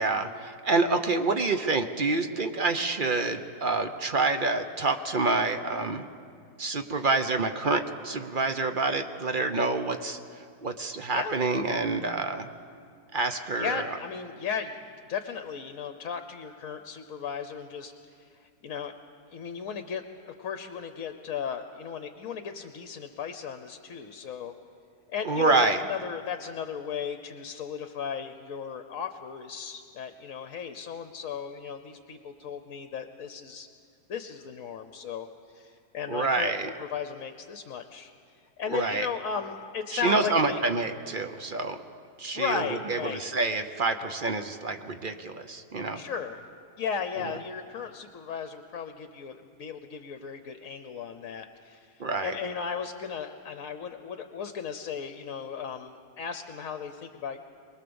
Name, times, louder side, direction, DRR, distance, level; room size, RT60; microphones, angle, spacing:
voice 1, 0.0-6.0 6.6-10.2 10.6-12.5 13.1-13.9 25.2-25.8 36.1-36.7 38.7-39.1 39.9-41.8 42.2-46.0 52.0-52.4, right 3 dB, 40° right, 7 dB, 0.8 m, -27 dB
voice 2, 9.4-9.7 11.1-11.4 13.6-14.8 15.1-17.9 18.6-18.9 19.3-24.5 25.1-33.7 34.1-35.3 35.5-38.1 38.6-40.6 42.3-43.2 45.9-46.4 46.8-57.4, left 7 dB, 60° left, 8 dB, 1.1 m, -36 dB
23.5 x 20.5 x 7.0 m, 2.3 s
omnidirectional pair, 1.8 m